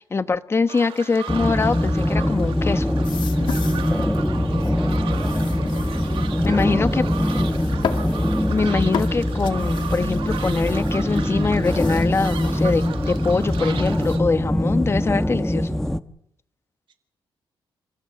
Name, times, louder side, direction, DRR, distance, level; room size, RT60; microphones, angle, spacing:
voice 1, 0.0-2.9 6.4-7.1 8.5-15.8, left 4 dB, 30° left, 11 dB, 1.1 m, -23 dB
sound 1, 0.7-14.2, right 9 dB, 90° right, 1.9 m, -37 dB
sound 2, 1.3-16.0, left 1 dB, 5° left, 1.0 m, -22 dB
sound 3, 3.0-14.2, left 8 dB, 65° left, 2.1 m, -36 dB
voice 2, 4.3-8.2 16.9-17.0, right 6 dB, 65° right, 8 dB, 4.3 m, -43 dB
28.5 x 16.0 x 7.9 m, 0.73 s
cardioid pair, 125°, 9 cm